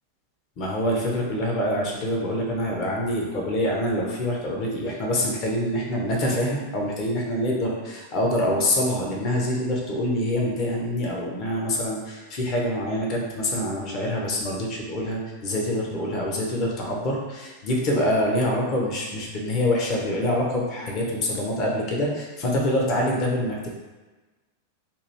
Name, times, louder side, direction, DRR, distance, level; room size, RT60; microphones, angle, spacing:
voice 1, 0.6-23.7, left 1 dB, 35° left, -2 dB, 0.9 m, -25 dB
2.9 x 2.6 x 4.4 m, 1.2 s
figure-of-eight pair, 90°, 0 cm